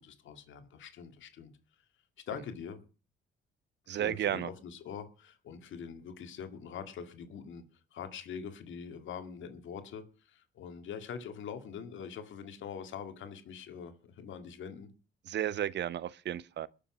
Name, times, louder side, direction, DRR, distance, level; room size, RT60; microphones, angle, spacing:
voice 1, 0.0-1.5 2.3-2.8 3.9-7.6 7.9-14.9, left 7 dB, 75° left, 2.1 m, -44 dB
voice 2, 3.9-4.5 15.3-16.7, right 11 dB, 60° right, 0.7 m, -33 dB
21.0 x 7.1 x 6.0 m
cardioid pair, 90°, 20 cm